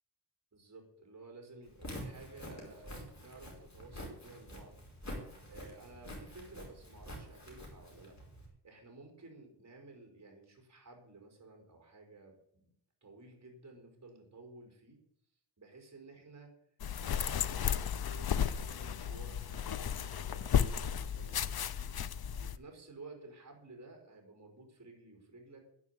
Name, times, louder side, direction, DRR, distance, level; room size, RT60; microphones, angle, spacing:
voice 1, 0.5-4.8 5.5-8.2 8.6-12.7 13.0-15.0 15.6-16.5 17.0-21.9 22.4-25.7, right 3 dB, 40° right, 3 dB, 4.7 m, -54 dB
Walk footsteps, 1.7-8.5, equal, 40° left, 4.9 m, -47 dB
sound 1, 16.8-22.6, left 8 dB, 60° left, 0.7 m, -34 dB
11.0 x 9.9 x 8.3 m, 0.70 s
wide cardioid pair, 135°, 42 cm